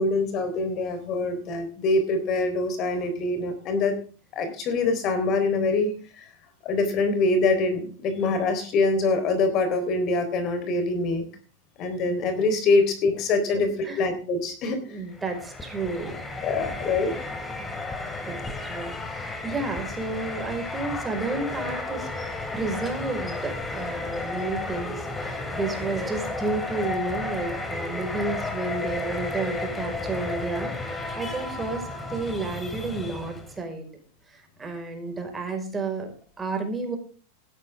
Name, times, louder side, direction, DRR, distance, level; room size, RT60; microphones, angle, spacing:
voice 1, 0.0-4.0 4.3-6.3 6.6-11.3 11.8-13.7 14.0-15.0 16.4-17.2, left 3 dB, 40° left, 9 dB, 4.0 m, -24 dB
voice 2, 13.5-14.1 14.9-16.3 18.2-22.1 22.5-33.9 34.3-37.0, right 3 dB, 15° right, 4 dB, 5.0 m, -32 dB
sound 1, 15.1-33.6, left 2 dB, 15° left, 3.0 m, -33 dB
16.5 x 13.0 x 3.6 m, 0.39 s
supercardioid pair, 135°, 0 cm